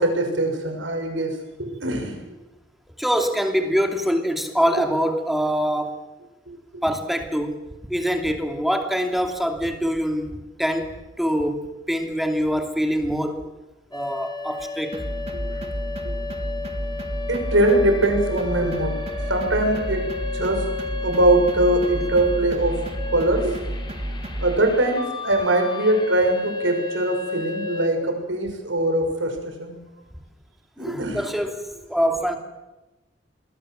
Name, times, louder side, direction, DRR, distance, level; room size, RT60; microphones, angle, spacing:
voice 1, 0.0-2.1 6.5-6.8 15.5-15.6 17.3-20.7 21.0-23.5 24.4-29.8 30.8-31.2, right 1 dB, 80° right, 4 dB, 6.4 m, -22 dB
voice 2, 3.0-6.0 6.8-7.6 7.9-13.4 13.9-15.0 22.0-22.1 30.8-32.4, equal, ahead, 4 dB, 2.9 m, -24 dB
sound 1, 13.9-27.9, left 4 dB, 25° left, 3.9 m, -33 dB
sound 2, 14.9-24.6, equal, 30° right, 2.5 m, -31 dB
27.5 x 21.5 x 7.8 m, 1.1 s
head